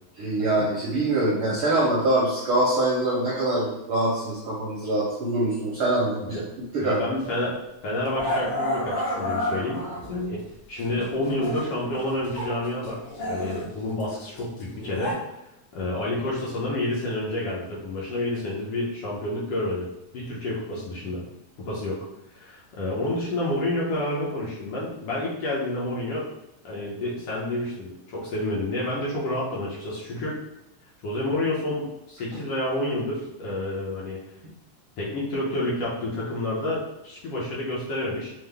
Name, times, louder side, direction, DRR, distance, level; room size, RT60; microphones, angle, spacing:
voice 1, 0.2-6.4 6.7-7.0, right 2 dB, 75° right, -7 dB, 1.2 m, -24 dB
voice 2, 6.8-7.6 7.8-10.4 10.7-15.2 15.7-19.9 20.1-21.2 21.6-22.0 22.3-26.3 26.6-30.4 31.0-34.2 35.0-38.3, left 1 dB, 65° left, -6 dB, 1.5 m, -29 dB
Growling, 7.2-7.4 8.1-10.2 10.8-12.6 12.8-15.1, left 1 dB, 50° left, 1.6 m, -31 dB
5.6 x 2.2 x 3.4 m, 0.91 s
omnidirectional pair, 3.5 m